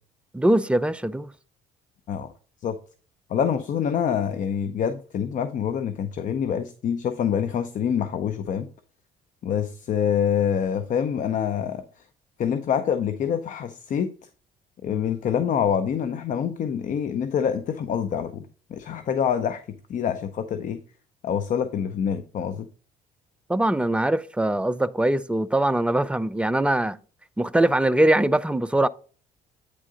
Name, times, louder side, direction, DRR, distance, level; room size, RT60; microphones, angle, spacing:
voice 1, 0.3-1.3 23.5-27.0 27.4-28.9, right 1 dB, 5° right, 0.3 m, -22 dB
voice 2, 3.3-8.7 9.4-12.0 12.4-14.1 14.8-20.8 21.2-22.7, left 8 dB, 50° left, 0.6 m, -26 dB
8.8 x 3.8 x 4.9 m
cardioid pair, 110°, 17 cm